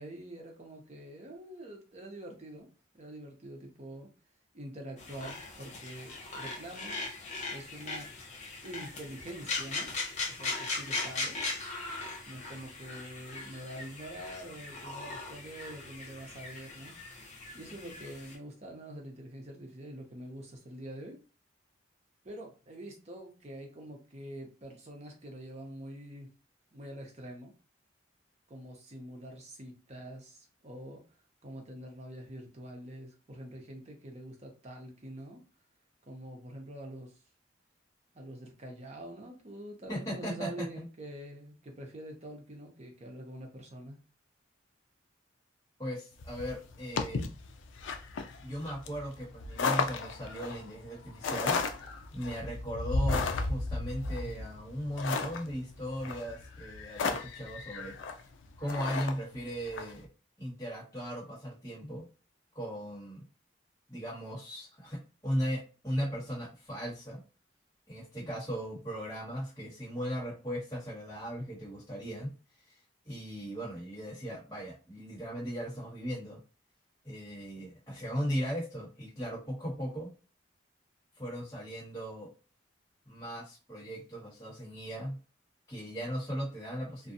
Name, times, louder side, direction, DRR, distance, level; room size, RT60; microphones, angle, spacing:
voice 1, 0.0-2.7 2.9-4.1 4.5-7.1 7.5-8.2 8.6-9.9 10.2-11.5 12.3-16.9 17.5-21.2 22.2-26.3 26.7-27.5 28.5-31.0 31.4-35.4 36.0-37.2 38.1-44.0, right 1 dB, 35° right, 0.6 m, -45 dB
sound 1, 5.0-18.4, left 3 dB, 35° left, 0.7 m, -39 dB
voice 2, 39.9-40.8 45.8-47.2 48.4-57.9 58.6-60.1 60.4-62.0 62.5-63.2 63.9-65.0 65.2-67.2 67.9-72.3 72.7-72.8 73.0-76.4 77.0-80.1 81.2-82.3 83.0-85.2 85.7-87.1, equal, 15° left, 1.4 m, -37 dB
sound 2, 46.2-59.9, left 4 dB, 70° left, 0.4 m, -34 dB
2.6 x 2.2 x 2.6 m
head